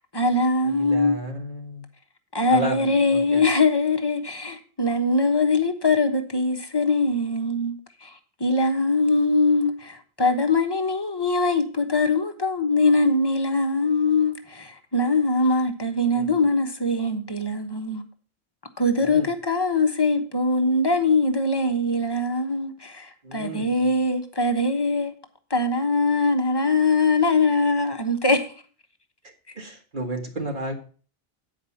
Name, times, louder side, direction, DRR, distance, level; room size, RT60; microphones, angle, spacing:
voice 1, 0.1-1.2 2.3-7.7 8.0-18.0 18.8-25.1 25.5-28.5, left 2 dB, 25° left, 1.1 m, -22 dB
voice 2, 0.8-1.8 2.5-2.9 3.3-3.4 16.1-16.3 19.1-19.3 23.2-23.6 29.6-30.7, right 1 dB, 50° right, 1.7 m, -31 dB
9.4 x 5.0 x 7.0 m
omnidirectional pair, 1.1 m